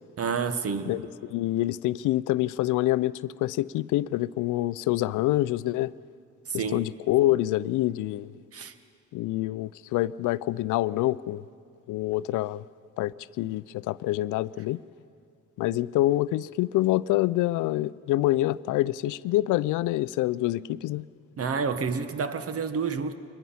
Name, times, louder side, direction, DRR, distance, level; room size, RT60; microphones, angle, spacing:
voice 1, 0.2-1.0 6.5-6.9 8.5-8.7 21.4-23.1, right 5 dB, 50° right, 10 dB, 1.3 m, -29 dB
voice 2, 0.9-5.9 6.5-8.4 9.1-11.4 11.9-12.6 13.0-14.8 15.6-21.1, left 16 dB, 90° left, 19 dB, 0.5 m, -26 dB
23.5 x 20.0 x 5.7 m, 2.4 s
cardioid pair, 90°, 30 cm